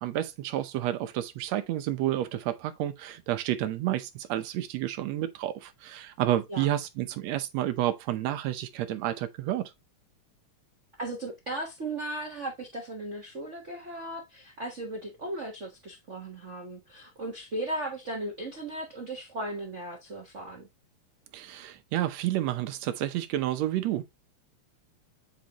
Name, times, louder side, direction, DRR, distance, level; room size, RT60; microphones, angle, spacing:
voice 1, 0.0-9.7 21.3-24.0, right 13 dB, 70° right, 1.7 m, -30 dB
voice 2, 11.0-20.7, right 1 dB, 90° right, 0.6 m, -36 dB
8.0 x 4.9 x 2.9 m
omnidirectional pair, 3.6 m